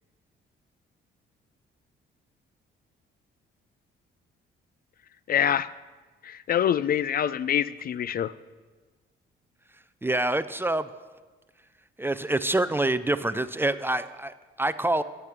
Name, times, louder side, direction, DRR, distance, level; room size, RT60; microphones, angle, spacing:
voice 1, 5.3-5.7 6.2-8.3, left 9 dB, 50° left, 17 dB, 0.4 m, -25 dB
voice 2, 10.0-10.9 12.0-15.0, right 2 dB, 10° right, 14 dB, 0.4 m, -26 dB
12.0 x 8.6 x 6.0 m, 1.3 s
cardioid pair, 90°, 20 cm